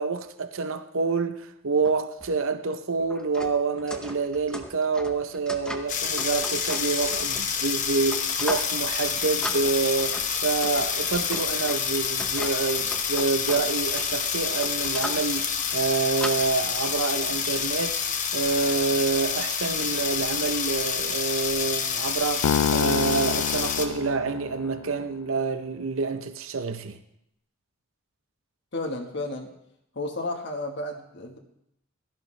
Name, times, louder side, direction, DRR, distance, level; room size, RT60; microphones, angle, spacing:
voice 1, 0.0-18.0 18.3-27.0, right 4 dB, 65° right, 0.7 m, -27 dB
sound 1, 1.8-2.0 2.2-2.3 2.9-7.6 8.1-8.7 9.0-9.1 9.4-15.3 15.8-16.3, equal, 5° left, 0.7 m, -38 dB
sound 2, 5.9-23.9, left 7 dB, 35° left, 1.0 m, -28 dB
sound 3, 22.4-24.8, left 7 dB, 85° left, 0.4 m, -27 dB
voice 2, 28.7-29.5 29.9-31.4, left 2 dB, 50° left, 1.4 m, -32 dB
16.5 x 13.0 x 3.3 m
head